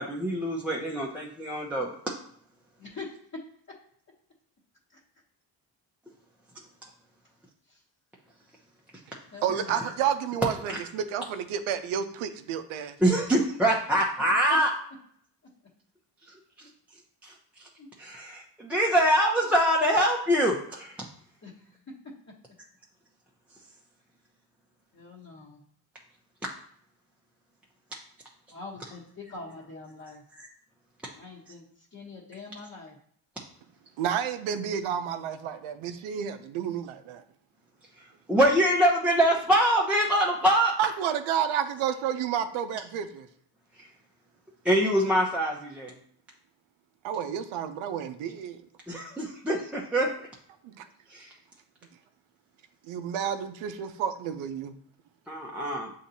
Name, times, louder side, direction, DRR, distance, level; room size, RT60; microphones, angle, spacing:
voice 1, 0.0-2.1 10.7-10.8 13.0-14.7 16.6-16.7 17.2-17.3 18.0-21.0 30.4-30.5 38.3-40.7 43.8-43.9 44.6-45.9 48.9-50.1 51.1-51.3 55.3-55.9, equal, 5° right, 0.7 m, -24 dB
voice 2, 2.8-3.1 4.9-5.0 7.7-7.8 9.3-9.8 14.5-14.6 17.8-17.9 21.4-21.5 24.9-25.6 28.5-30.2 31.1-31.6 31.9-33.0, left 3 dB, 30° left, 1.1 m, -43 dB
voice 3, 9.4-13.0 34.0-37.2 40.8-43.3 47.0-48.6 50.6-50.9 52.9-54.7, right 8 dB, 75° right, 0.6 m, -30 dB
7.0 x 2.8 x 2.7 m
supercardioid pair, 55°, 50 cm